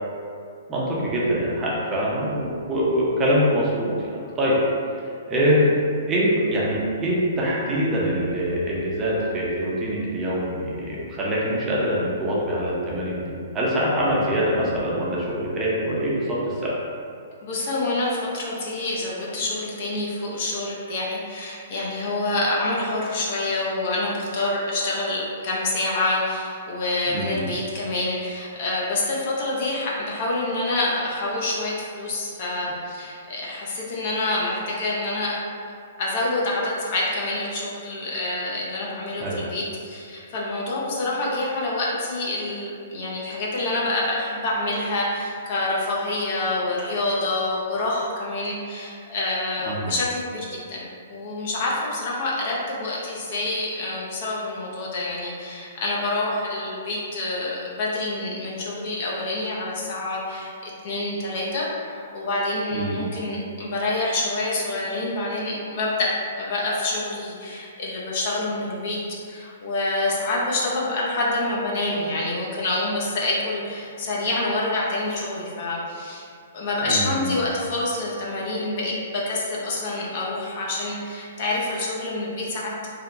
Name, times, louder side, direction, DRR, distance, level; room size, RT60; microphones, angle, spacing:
voice 1, 0.7-4.6 5.3-5.7 6.1-13.3 13.5-16.8 27.1-27.5 39.2-39.4 49.7-49.9 62.7-63.1 76.8-77.2, equal, 20° right, -6 dB, 0.6 m, -24 dB
voice 2, 17.4-35.4 36.0-66.1 66.4-69.0 69.2-76.3 76.5-82.7, left 2 dB, 50° left, -5 dB, 0.6 m, -27 dB
2.7 x 2.1 x 2.6 m, 2.4 s
hypercardioid pair, 130°, 0 cm